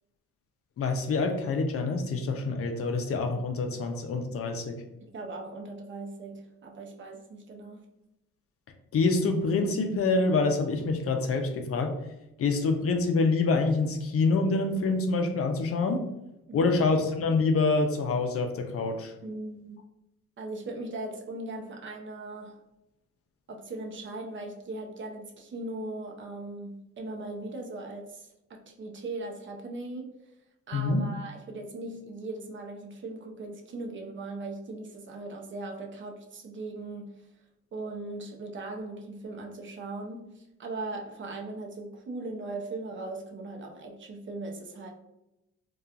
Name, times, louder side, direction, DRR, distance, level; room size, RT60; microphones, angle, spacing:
voice 1, 0.8-4.8 8.9-12.0 12.4-16.0 16.5-19.1 30.7-31.0, left 3 dB, 50° left, 5 dB, 0.5 m, -26 dB
voice 2, 5.0-7.9 16.5-16.8 19.2-19.8 20.4-22.6 23.5-30.2 30.7-37.3 37.7-44.9, right 2 dB, 40° right, 1 dB, 0.6 m, -39 dB
2.8 x 2.3 x 2.4 m, 0.89 s
cardioid pair, 90°, 30 cm